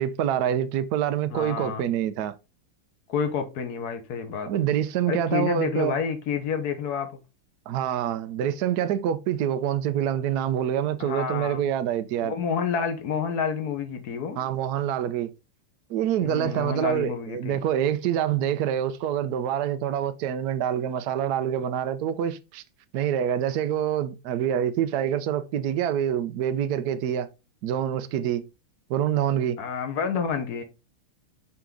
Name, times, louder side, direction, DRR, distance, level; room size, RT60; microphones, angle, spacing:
voice 1, 0.0-2.3 4.5-5.9 7.7-12.3 14.4-15.3 15.9-22.6 22.9-27.3 27.6-28.4 28.9-29.6, right 10 dB, 75° right, 0.9 m, -26 dB
voice 2, 1.3-1.8 3.1-4.5 5.1-7.1 11.0-11.7 12.2-14.4 16.2-17.6 29.6-30.6, left 6 dB, 55° left, 1.4 m, -29 dB
5.8 x 4.8 x 3.8 m
omnidirectional pair, 2.4 m